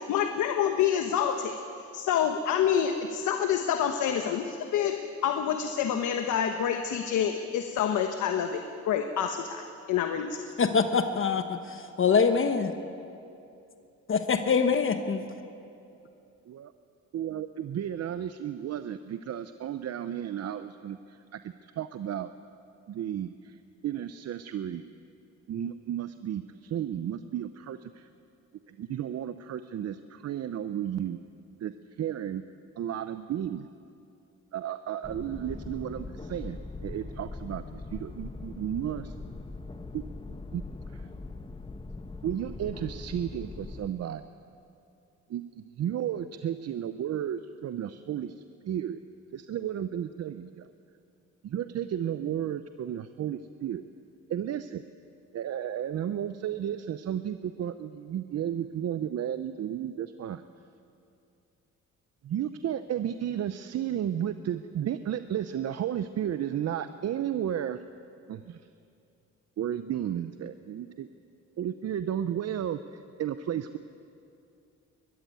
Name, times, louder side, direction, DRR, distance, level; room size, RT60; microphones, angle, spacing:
voice 1, 0.0-1.6 1.9-5.0 5.2-10.5, left 8 dB, 80° left, 6 dB, 1.2 m, -27 dB
voice 2, 10.6-12.7 14.1-15.2, left 5 dB, 45° left, 8 dB, 1.1 m, -24 dB
voice 3, 17.1-22.3 22.9-23.6 23.8-24.8 25.5-28.1 28.7-31.2 31.6-32.4 32.8-33.7 34.5-36.6 36.8-39.1 39.9-40.0 40.5-40.6 40.9-41.1 42.2-44.2 45.3-48.4 48.6-49.0 49.3-50.7 51.4-53.8 54.3-54.8 55.3-60.4 62.2-67.8 68.3-68.6 69.6-71.1 71.6-73.8, right 10 dB, 55° right, 11 dB, 0.7 m, -33 dB
sound 1, 35.0-43.9, left 3 dB, 15° left, 1.1 m, -41 dB
21.5 x 14.0 x 9.3 m, 2.6 s
cardioid pair, 90°, 30 cm